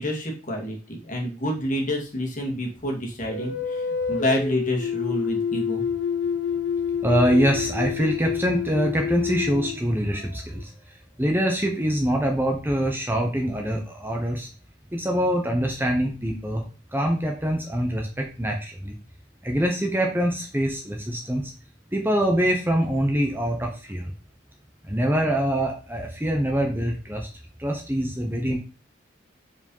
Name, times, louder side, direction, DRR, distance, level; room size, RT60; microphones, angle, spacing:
voice 1, 0.0-5.8, equal, 40° left, 0 dB, 2.1 m, -28 dB
sound 1, 3.3-10.6, left 7 dB, 60° left, 1.0 m, -28 dB
voice 2, 7.0-10.7 11.2-14.5 14.9-16.6 16.9-18.9 19.4-21.5 21.9-24.1 24.8-27.3 27.6-28.6, equal, 10° right, 1 dB, 1.0 m, -24 dB
5.4 x 4.8 x 5.5 m, 0.36 s
head